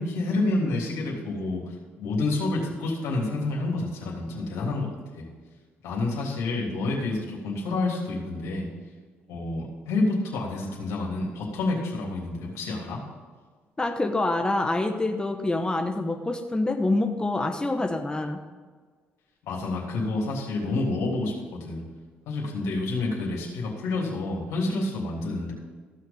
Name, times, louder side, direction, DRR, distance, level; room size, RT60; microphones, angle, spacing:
voice 1, 0.0-1.7 2.0-5.3 5.8-8.7 9.3-13.0 19.4-21.8 22.2-25.5, left 2 dB, 75° left, -2 dB, 3.4 m, -28 dB
voice 2, 13.8-18.4, left 2 dB, 15° left, 4 dB, 1.1 m, -26 dB
15.5 x 6.4 x 5.5 m, 1.5 s
hypercardioid pair, 60°, 5 cm